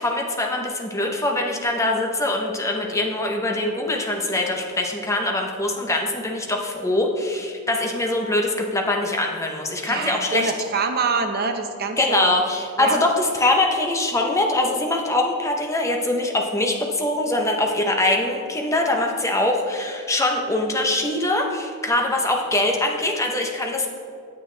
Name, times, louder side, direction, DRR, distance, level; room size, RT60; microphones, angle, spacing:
voice 1, 0.0-10.5 12.0-23.9, left 2 dB, 15° left, 1 dB, 0.8 m, -23 dB
voice 2, 9.9-12.3 12.8-13.0, right 4 dB, 45° right, 5 dB, 0.7 m, -25 dB
9.1 x 8.0 x 3.3 m, 2.2 s
head